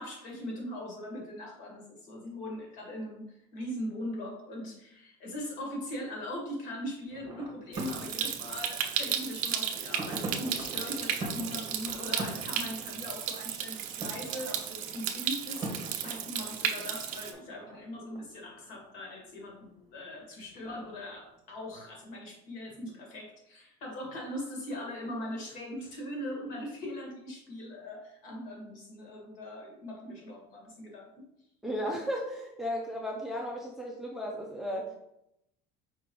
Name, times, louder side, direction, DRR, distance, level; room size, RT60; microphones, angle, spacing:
voice 1, 0.0-31.2, left 1 dB, 55° left, -1 dB, 1.6 m, -40 dB
sound 1, 7.1-19.6 20.2-21.0 21.7-21.8, right 2 dB, 25° right, 0.9 m, -43 dB
Stream, 7.7-17.3, right 9 dB, 55° right, 0.5 m, -34 dB
voice 2, 31.6-35.0, equal, ahead, -1 dB, 0.5 m, -35 dB
4.9 x 3.5 x 3.0 m, 0.79 s
cardioid pair, 165°, 16 cm